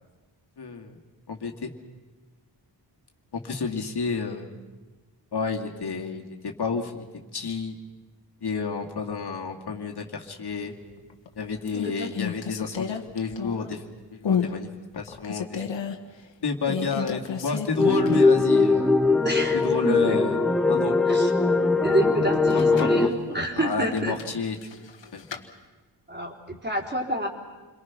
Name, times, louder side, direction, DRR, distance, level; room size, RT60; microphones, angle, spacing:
voice 1, 0.6-1.0 1.3-1.7 3.3-4.5 5.3-7.0 7.3-7.8 8.4-10.8 11.4-13.8 14.1-14.7 15.0-15.7 16.4-19.0 19.5-20.4 20.7-21.0 22.5-23.1 23.6-24.9 25.1-25.2, left 4 dB, 65° left, 1 dB, 2.3 m, -30 dB
sound 1, 10.9-11.3 11.7-13.8 14.2-14.6 14.9-16.0 16.6-18.4 18.7-18.8 22.3-23.0 23.9-25.4, left 7 dB, 85° left, 1.7 m, -31 dB
sound 2, 17.8-23.1, left 3 dB, ahead, 1.6 m, -21 dB
voice 2, 19.2-20.2 21.1-21.3 21.8-24.1 26.1-27.3, right 1 dB, 25° right, 0 dB, 4.0 m, -28 dB
29.0 x 22.5 x 6.0 m, 1.3 s
wide cardioid pair, 80°, 43 cm